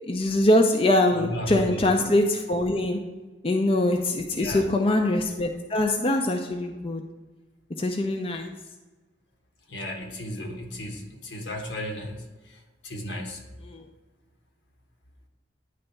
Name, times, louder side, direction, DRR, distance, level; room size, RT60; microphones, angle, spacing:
voice 1, 0.1-3.0 3.4-7.0 7.8-8.5 13.7-13.8, left 1 dB, 30° left, 3 dB, 0.5 m, -23 dB
voice 2, 1.1-1.9 4.4-4.8 9.7-12.2 12.8-13.4, left 1 dB, 80° left, 3 dB, 1.3 m, -34 dB
9.9 x 3.4 x 5.4 m, 1.2 s
head